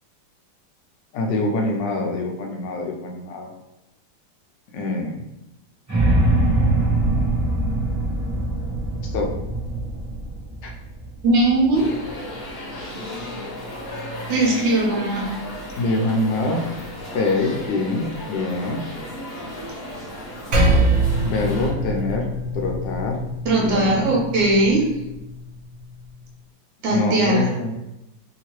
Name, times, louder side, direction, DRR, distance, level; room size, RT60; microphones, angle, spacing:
voice 1, 1.1-3.5 4.7-5.2 9.1-9.3 10.6-10.7 15.8-16.7 17.1-18.8 21.2-22.3 22.5-23.2 23.6-24.2 26.9-27.7, left 2 dB, 75° left, 1 dB, 1.2 m, -25 dB
sound 1, 5.9-12.0, right 2 dB, 25° right, 0.3 m, -22 dB
voice 2, 11.2-11.9 14.3-15.4 23.4-24.8 26.8-27.5, right 2 dB, 75° right, -3 dB, 1.7 m, -19 dB
sound 2, 11.7-21.7, left 1 dB, 50° left, 0.7 m, -34 dB
Percussion, 20.5-25.3, right 2 dB, 60° right, 0.8 m, -23 dB
3.6 x 2.8 x 2.9 m, 0.92 s
omnidirectional pair, 2.1 m